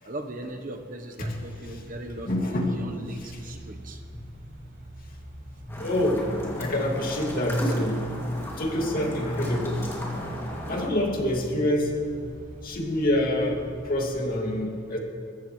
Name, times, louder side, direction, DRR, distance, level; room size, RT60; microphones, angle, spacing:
voice 1, 0.1-4.0, right 1 dB, 45° right, 4 dB, 1.0 m, -38 dB
sound 1, 1.3-14.3, equal, 65° right, 3.3 m, -45 dB
voice 2, 2.3-2.8 3.2-3.3 5.6-8.0 8.6-9.9 10.7-11.9 12.6-15.0, left 1 dB, 50° left, 0 dB, 2.3 m, -26 dB
sound 2, 5.7-10.9, equal, 15° left, 2.4 m, -35 dB
22.0 x 14.5 x 3.2 m, 2.4 s
head